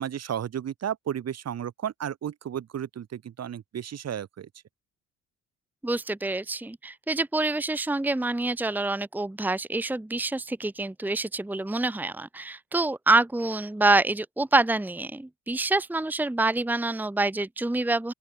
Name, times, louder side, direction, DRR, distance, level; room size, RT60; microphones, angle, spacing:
voice 1, 0.0-4.5, right 9 dB, 55° right, 2.2 m, -33 dB
voice 2, 5.8-18.1, right 2 dB, 5° right, 1.0 m, -26 dB
open air
cardioid pair, 90°, 30 cm